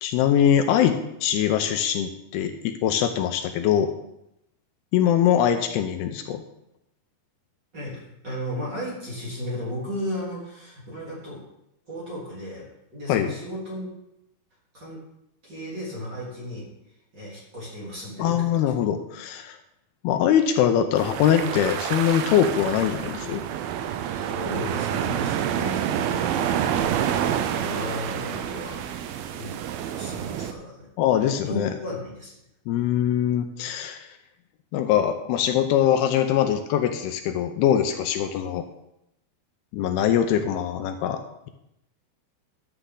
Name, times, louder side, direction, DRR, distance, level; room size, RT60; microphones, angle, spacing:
voice 1, 0.0-3.9 4.9-6.4 13.1-13.3 18.2-19.6 20.0-23.4 31.0-31.7 32.7-34.1 34.7-38.7 39.7-41.5, left 9 dB, 80° left, 7 dB, 2.6 m, -22 dB
voice 2, 7.7-11.4 11.9-13.9 14.7-15.0 15.4-16.7 17.1-18.7 24.1-26.6 27.2-29.6 30.0-30.9 31.5-32.3, left 1 dB, 30° right, -7 dB, 3.7 m, -35 dB
sound 1, 21.0-30.5, right 9 dB, 80° right, 2.3 m, -28 dB
11.5 x 8.4 x 3.8 m, 0.82 s
omnidirectional pair, 4.7 m